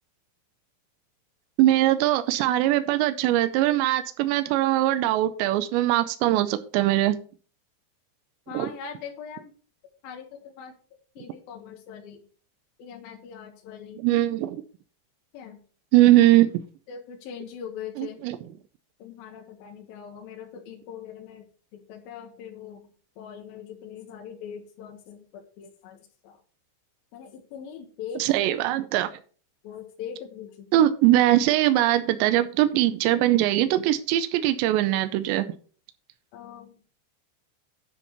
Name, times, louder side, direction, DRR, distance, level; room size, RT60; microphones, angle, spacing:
voice 1, 1.6-7.1 8.5-8.7 14.0-14.6 15.9-16.6 18.0-18.5 28.2-29.1 30.7-35.5, right 14 dB, 85° right, 9 dB, 2.5 m, -21 dB
voice 2, 8.5-9.5 10.0-10.7 11.2-12.2 12.8-14.0 15.3-15.6 16.9-18.2 19.0-21.5 21.7-22.9 23.2-26.3 27.1-28.5 29.6-30.7 36.3-36.7, left 7 dB, 70° left, 1 dB, 2.2 m, -41 dB
9.9 x 4.4 x 6.6 m, 0.41 s
omnidirectional pair, 5.8 m